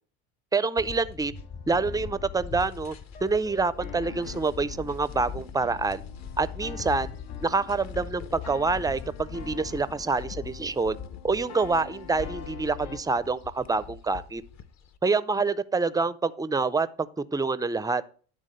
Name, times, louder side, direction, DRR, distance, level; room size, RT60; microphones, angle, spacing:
voice 1, 0.5-1.3 1.7-3.0 3.2-6.0 6.4-7.1 7.4-11.0 11.2-14.4 15.0-18.0, right 4 dB, 10° right, 15 dB, 0.4 m, -27 dB
sound 1, 0.8-15.0, left 6 dB, 40° left, 0.8 m, -42 dB
sound 2, 1.3-13.0, left 7 dB, 75° left, 1.2 m, -44 dB
10.5 x 3.5 x 6.5 m, 0.42 s
supercardioid pair, 85°, 43 cm